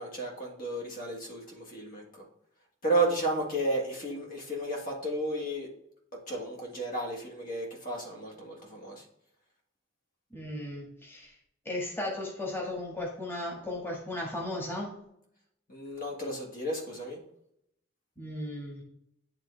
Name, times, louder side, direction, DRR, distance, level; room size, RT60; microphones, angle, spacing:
voice 1, 0.0-2.2 2.8-5.7 6.1-9.0 15.7-17.2, right 2 dB, 45° left, -1 dB, 1.8 m, -33 dB
voice 2, 10.3-11.3 11.6-14.9 18.2-18.8, left 1 dB, 10° left, -3 dB, 1.7 m, -36 dB
10.5 x 3.7 x 3.4 m, 0.74 s
head